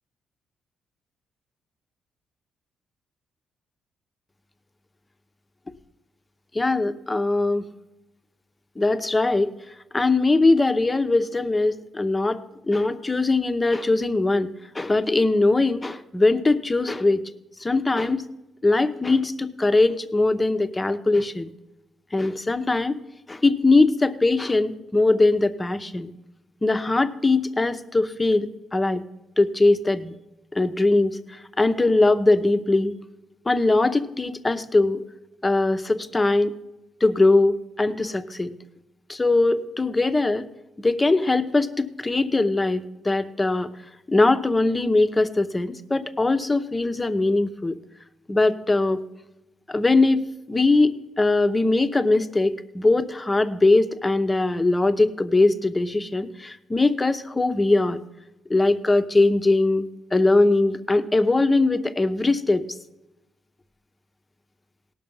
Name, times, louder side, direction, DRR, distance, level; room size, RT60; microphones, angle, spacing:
voice 1, 6.5-7.6 8.8-9.5 9.9-17.2 17.6-18.3 18.6-21.5 22.1-23.0 23.3-26.1 26.6-29.0 29.4-30.1 30.5-32.9 33.5-35.0 35.4-36.5 37.0-38.5 39.1-40.5 40.8-43.7 44.1-47.8 48.3-49.0 49.7-58.0 58.5-62.6, left 2 dB, 20° left, 10 dB, 0.7 m, -21 dB
17.5 x 6.0 x 5.5 m, 0.96 s
cardioid pair, 90°, 0 cm